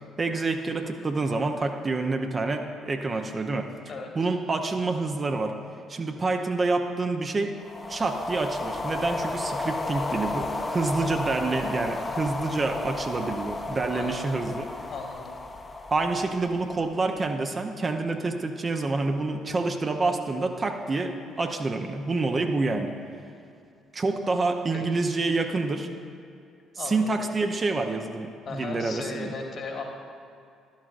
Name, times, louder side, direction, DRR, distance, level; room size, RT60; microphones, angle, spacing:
voice 1, 0.2-3.7 4.1-5.5 5.9-7.6 7.9-14.7 15.9-22.9 23.9-25.9 26.8-29.3, right 3 dB, 30° right, 4 dB, 0.7 m, -27 dB
sound 1, 7.6-17.1, left 2 dB, 25° left, 0.8 m, -33 dB
voice 2, 11.8-12.3 13.9-14.3 14.9-15.3 24.7-24.8 26.8-27.1 28.4-29.8, left 4 dB, 50° left, 1 dB, 1.5 m, -37 dB
12.0 x 11.5 x 2.5 m, 2.5 s
figure-of-eight pair, 50°, 0 cm